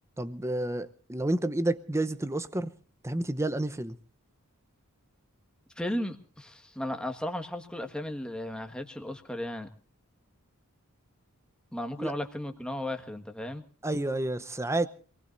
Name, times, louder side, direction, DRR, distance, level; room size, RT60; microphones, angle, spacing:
voice 1, 0.2-2.7 3.0-4.0 12.0-12.1 13.8-14.9, right 1 dB, 10° right, 13 dB, 0.8 m, -30 dB
voice 2, 5.8-9.7 11.7-13.6, left 1 dB, 5° left, 5 dB, 1.6 m, -35 dB
27.0 x 19.0 x 2.6 m, 0.42 s
head